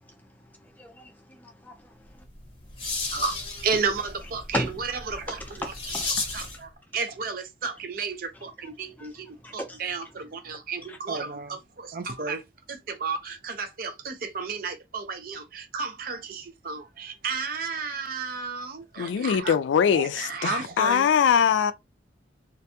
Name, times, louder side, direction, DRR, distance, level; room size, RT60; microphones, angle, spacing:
voice 1, 0.6-2.2 4.5-4.7 5.4-6.1 9.0-9.1 9.4-9.8 10.9-11.0, equal, 10° left, 0.5 m, -35 dB
sound 1, 2.2-6.7, left 3 dB, 30° left, 1.0 m, -34 dB
voice 2, 3.1-5.7 6.3-12.4 12.7-21.1, right 4 dB, 50° right, 0.5 m, -33 dB
voice 3, 19.0-21.7, left 7 dB, 85° left, 0.3 m, -22 dB
2.5 x 2.2 x 2.7 m
head